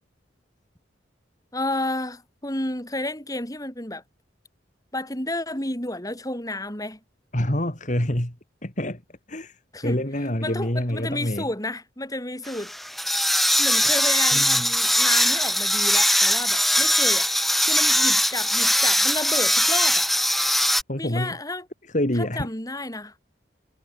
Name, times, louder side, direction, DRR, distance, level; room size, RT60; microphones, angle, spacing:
voice 1, 1.5-4.0 4.9-7.0 9.7-10.0 10.4-12.7 13.6-17.3 17.7-20.1 21.0-21.6 22.2-23.1, left 1 dB, 20° left, 5.3 m, -31 dB
voice 2, 7.3-8.4 8.6-9.0 9.3-11.5 14.3-14.7 20.9-21.4 21.9-22.5, left 1 dB, 40° left, 3.2 m, -26 dB
sound 1, 12.5-20.8, equal, ahead, 1.7 m, -21 dB
head